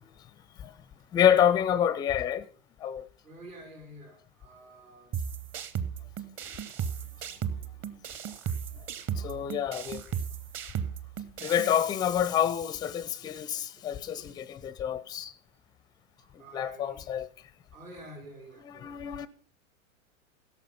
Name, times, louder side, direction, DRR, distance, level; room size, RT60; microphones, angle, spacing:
voice 1, 1.1-2.5 2.8-3.1 9.2-10.0 11.4-15.3 16.5-17.3 18.6-19.3, left 9 dB, 10° left, 0.5 m, -27 dB
voice 2, 3.2-5.2 6.6-6.7 7.4-7.9 8.9-9.6 11.0-11.1 13.8-14.4 16.2-17.0 17.7-19.0, right 1 dB, 75° right, 4.6 m, -50 dB
sound 1, 5.1-11.7, right 8 dB, 30° right, 1.0 m, -35 dB
17.0 x 6.9 x 5.6 m
figure-of-eight pair, 95°, 40 cm